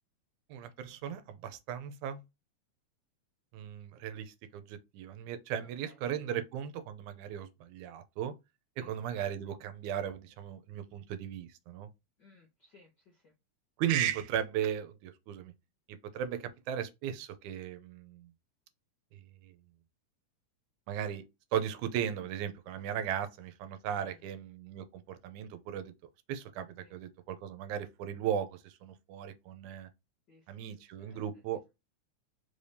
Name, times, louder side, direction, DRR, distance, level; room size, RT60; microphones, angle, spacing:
voice 1, 0.5-2.2 3.5-8.3 8.8-11.9 13.8-15.5 15.9-18.3 19.1-19.5 20.9-21.2 21.5-25.9 26.3-29.9 30.5-31.6, right 9 dB, 80° right, 2.1 m, -37 dB
voice 2, 5.6-6.0 6.3-6.4 8.8-9.0 9.4-9.5 12.2-13.3 23.9-24.2 26.8-27.0 30.3-31.4, left 3 dB, 65° left, 1.0 m, -62 dB
5.1 x 2.7 x 3.3 m
omnidirectional pair, 3.5 m